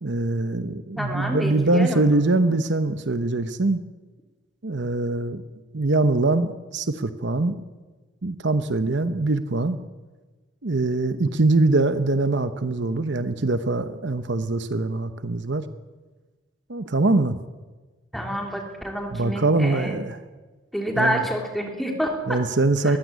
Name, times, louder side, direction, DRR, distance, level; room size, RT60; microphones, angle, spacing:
voice 1, 0.0-3.8 4.6-5.4 5.7-7.6 8.2-9.8 10.6-15.6 16.7-17.4 19.1-20.2 21.0-21.2 22.3-23.0, right 2 dB, 60° right, 10 dB, 1.0 m, -23 dB
voice 2, 1.0-2.0 18.1-20.0 20.7-22.4 22.8-23.0, equal, ahead, 2 dB, 3.2 m, -28 dB
21.5 x 16.0 x 9.3 m, 1.3 s
head